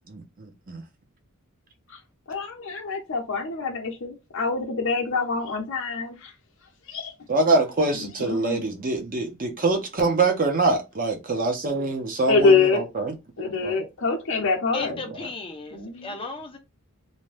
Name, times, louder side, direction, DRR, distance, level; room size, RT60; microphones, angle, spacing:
voice 1, 0.1-0.8 7.3-13.1 13.6-13.7, right 3 dB, 40° right, 0.7 m, -24 dB
voice 2, 2.3-6.3 6.9-7.1 8.0-8.7 12.3-12.8 13.4-15.0 15.7-16.1, left 4 dB, 60° left, 0.7 m, -25 dB
voice 3, 14.7-16.6, left 3 dB, 25° left, 0.5 m, -35 dB
2.7 x 2.2 x 3.2 m
head